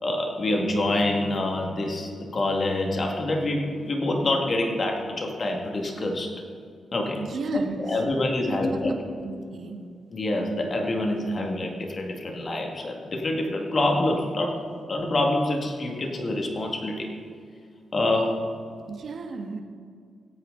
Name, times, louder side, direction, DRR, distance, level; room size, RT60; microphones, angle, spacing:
voice 1, 0.0-6.4 6.9-7.2 7.5-8.9 10.1-17.1 17.9-18.4, left 1 dB, 45° left, 2 dB, 2.1 m, -26 dB
voice 2, 7.2-7.8 8.5-9.8 18.9-19.6, right 4 dB, 65° right, 4 dB, 1.7 m, -34 dB
21.5 x 8.9 x 4.0 m, 2.2 s
cardioid pair, 80°, 0 cm